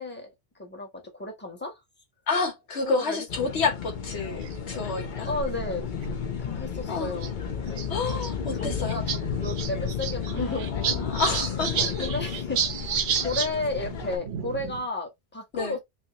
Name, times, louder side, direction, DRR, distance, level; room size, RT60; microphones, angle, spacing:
voice 1, 0.0-1.8 2.8-3.2 5.3-5.9 6.4-7.3 7.6-8.0 8.5-11.3 12.0-15.8, left 2 dB, 10° left, 1.0 m, -33 dB
voice 2, 2.3-5.3 6.9-7.2 7.9-9.0 10.3-12.1 13.1-13.3 15.5-15.8, left 4 dB, 80° left, 1.4 m, -30 dB
sound 1, 3.3-14.2, left 6 dB, 50° left, 0.8 m, -32 dB
sound 2, 4.4-4.8 5.7-5.8 6.0-6.1 7.2-7.3 7.7-8.3 8.6-8.7 8.9-9.2 9.4-13.5 13.8-14.9, right 7 dB, 75° right, 0.9 m, -30 dB
3.4 x 2.7 x 2.9 m
omnidirectional pair, 1.1 m